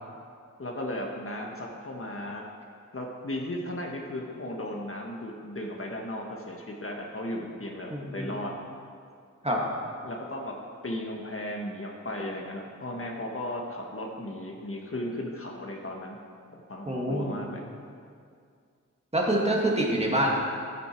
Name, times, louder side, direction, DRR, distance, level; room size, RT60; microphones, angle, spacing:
voice 1, 0.6-2.4 2.9-8.6 10.0-10.5 10.8-16.2 16.5-17.6, left 1 dB, 45° left, 0 dB, 1.4 m, -35 dB
voice 2, 7.9-8.3 9.4-9.6 16.9-17.4 19.1-20.3, right 1 dB, 20° right, -2 dB, 2.0 m, -26 dB
13.5 x 9.9 x 4.5 m, 2.2 s
wide cardioid pair, 90°, 31 cm